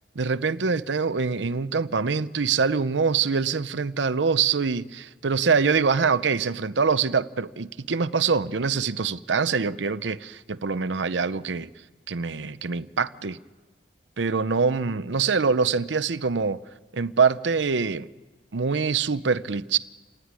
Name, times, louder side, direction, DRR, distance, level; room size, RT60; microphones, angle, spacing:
voice 1, 0.2-11.7 12.1-13.4 14.2-16.6 16.9-18.1 18.5-19.8, right 5 dB, 90° right, 0.7 m, -24 dB
28.5 x 16.5 x 9.7 m
head